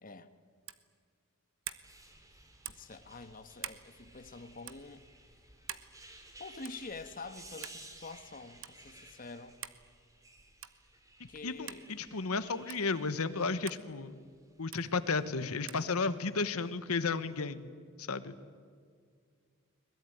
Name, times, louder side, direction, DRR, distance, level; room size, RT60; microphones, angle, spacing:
sound 1, 0.6-0.9 1.6-1.9 2.6-2.9 3.6-3.8 4.6-4.8 5.7-5.9 6.6-6.9 7.6-7.8 8.6-8.7 9.6-9.8 10.6-10.8 11.7-11.8 12.7-12.8 13.7-13.8 14.7-14.8 15.7-15.9, right 11 dB, 60° right, 1.2 m, -44 dB
sound 2, 1.8-15.3 16.1-16.7 17.2-17.4, right 2 dB, 15° right, 3.0 m, -56 dB
voice 1, 2.6-5.0 6.4-9.6 11.3-11.9, left 3 dB, 40° left, 1.4 m, -47 dB
voice 2, 11.4-14.2 14.6-17.7 18.0-18.3, left 4 dB, 80° left, 1.2 m, -33 dB
22.5 x 21.0 x 9.3 m
head